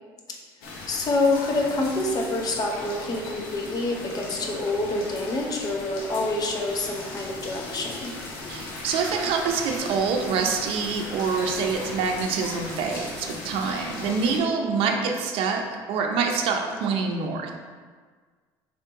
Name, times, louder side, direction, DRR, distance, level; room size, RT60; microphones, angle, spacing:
sound 1, 0.6-14.4, left 2 dB, 80° left, 0.8 m, -37 dB
voice 1, 0.9-8.1 14.1-14.8, left 2 dB, 40° left, 0 dB, 0.7 m, -27 dB
voice 2, 8.5-17.5, right 5 dB, 65° right, 3 dB, 0.5 m, -26 dB
4.2 x 3.4 x 2.9 m, 1.5 s
supercardioid pair, 90°, 10 cm